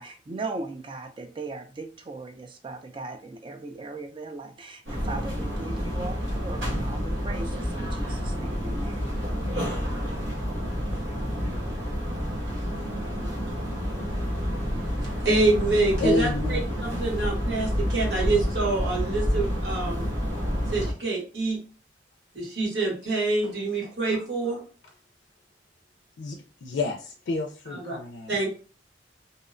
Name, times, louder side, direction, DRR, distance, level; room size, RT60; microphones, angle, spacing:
voice 1, 0.0-9.1, right 3 dB, 30° right, 6 dB, 0.3 m, -38 dB
sound 1, 4.9-20.9, equal, 90° right, 1.0 m, -29 dB
voice 2, 15.0-20.1 20.7-21.6 22.3-24.6 27.7-28.0 28.3-28.5, right 2 dB, 70° right, -3 dB, 1.2 m, -26 dB
voice 3, 16.0-16.7 23.4-23.5 24.0-24.2 26.2-28.4, left 2 dB, 85° left, 2 dB, 0.4 m, -29 dB
2.7 x 2.1 x 2.5 m, 0.38 s
head